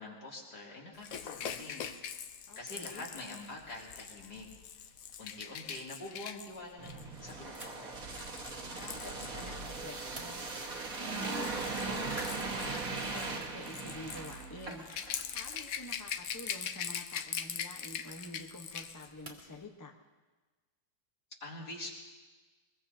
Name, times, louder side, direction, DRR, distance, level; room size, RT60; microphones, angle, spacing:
voice 1, 0.0-1.9 2.6-4.5 5.2-7.9 21.4-21.9, left 2 dB, 50° left, -4 dB, 3.3 m, -45 dB
Rattle / Rattle (instrument), 1.0-10.0 11.0-19.1 19.4-19.5, left 8 dB, 75° left, 0.8 m, -42 dB
voice 2, 2.5-3.1 8.6-10.5 11.0-14.9 15.3-19.9, left 2 dB, 25° left, 2 dB, 0.3 m, -48 dB
sound 1, 5.1-5.6 7.5-8.0 8.5-9.5 9.9-10.7 11.1-11.2 11.4-11.7 12.0-13.8 14.0-15.5 15.9-19.6, right 1 dB, 15° right, 1.8 m, -53 dB
sound 2, 6.8-15.1 15.5-15.6, right 3 dB, 45° right, 1.8 m, -39 dB
23.0 x 21.5 x 2.8 m, 1.3 s
omnidirectional pair, 2.3 m